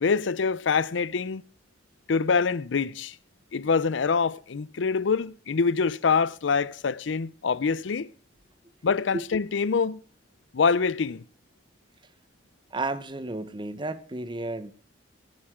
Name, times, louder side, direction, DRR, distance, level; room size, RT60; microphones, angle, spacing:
voice 1, 0.0-1.4 2.1-3.1 3.5-8.1 8.8-10.0 10.5-11.2, left 5 dB, 80° left, 0.5 m, -25 dB
voice 2, 12.7-14.7, right 2 dB, 25° right, 0.9 m, -32 dB
16.0 x 13.5 x 3.7 m
head